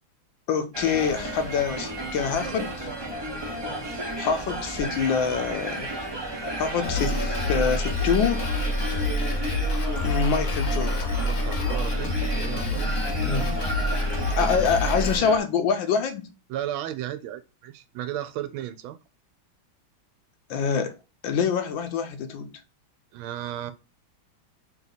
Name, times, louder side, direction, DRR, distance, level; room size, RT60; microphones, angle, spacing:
voice 1, 0.5-2.9 4.2-5.9 6.6-8.5 10.0-11.0 13.2-13.5 14.3-16.3 20.5-20.9 21.2-22.5, left 6 dB, 75° left, 1.3 m, -25 dB
sound 1, 0.7-15.4, right 1 dB, 45° right, 0.3 m, -33 dB
voice 2, 3.7-4.1 11.2-13.0 16.5-19.0 23.1-23.7, right 12 dB, 80° right, 1.4 m, -35 dB
Drum kit, 6.8-15.2, left 1 dB, 50° left, 0.9 m, -27 dB
3.5 x 3.0 x 3.9 m
omnidirectional pair, 2.3 m